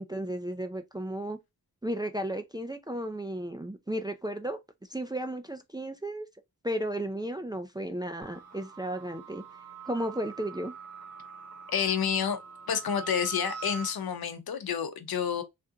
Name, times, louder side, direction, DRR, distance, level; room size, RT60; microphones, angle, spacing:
voice 1, 0.0-1.4 1.8-4.6 4.9-6.3 6.6-9.4 9.8-10.7, right 1 dB, 10° right, 0.3 m, -34 dB
sound 1, 8.2-13.9, right 5 dB, 45° right, 1.3 m, -44 dB
voice 2, 11.7-12.4 12.7-15.4, left 7 dB, 80° left, 0.8 m, -29 dB
3.5 x 2.4 x 2.7 m
wide cardioid pair, 130°, 36 cm